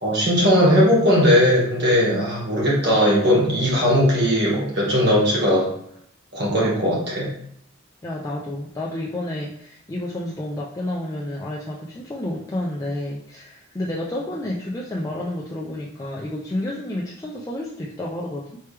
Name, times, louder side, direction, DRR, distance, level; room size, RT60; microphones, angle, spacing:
voice 1, 0.0-5.7 6.3-7.3, equal, 55° right, -4 dB, 1.6 m, -18 dB
voice 2, 8.0-18.5, left 1 dB, 15° left, -4 dB, 0.4 m, -30 dB
4.4 x 3.3 x 3.3 m, 0.68 s
head